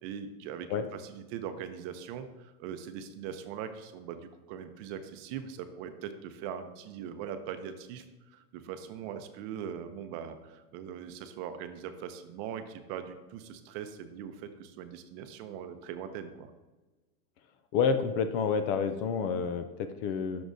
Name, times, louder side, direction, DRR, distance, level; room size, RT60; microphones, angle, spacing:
voice 1, 0.0-8.0 8.3-16.5, right 8 dB, 40° right, 8 dB, 0.7 m, -41 dB
voice 2, 17.7-20.4, left 6 dB, 40° left, 9 dB, 0.5 m, -29 dB
11.5 x 6.1 x 2.7 m, 1.2 s
supercardioid pair, 140°, 46 cm